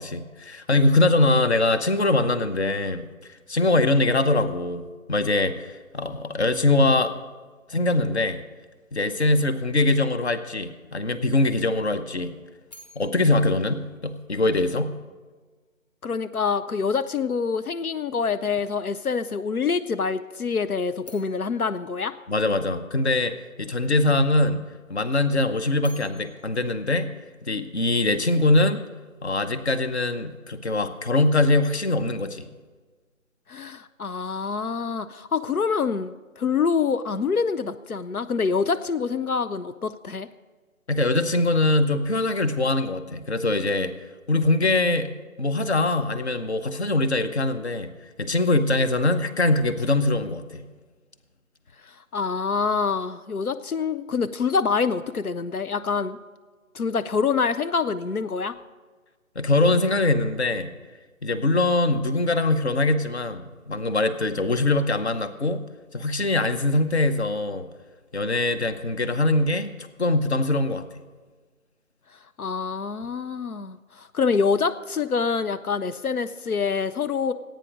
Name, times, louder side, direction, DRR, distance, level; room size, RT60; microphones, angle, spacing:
voice 1, 0.0-3.1 3.5-7.1 7.7-8.4 8.9-12.3 13.0-14.9 22.3-24.6 24.9-27.1 27.4-28.8 29.2-32.5 40.9-43.9 44.3-45.1 45.4-47.9 48.2-50.6 59.3-60.7 61.2-65.6 65.9-67.7 68.1-69.7 70.0-70.9, left 2 dB, 50° left, 10 dB, 0.9 m, -22 dB
sound 1, 12.7-14.8 21.0-23.2 25.5-28.0, equal, 30° left, 1.8 m, -53 dB
voice 2, 16.0-22.1 33.5-40.3 51.8-56.2 56.7-58.5 72.4-77.3, left 5 dB, 90° left, 12 dB, 0.6 m, -26 dB
15.5 x 9.1 x 6.2 m, 1.4 s
figure-of-eight pair, 155°, 42 cm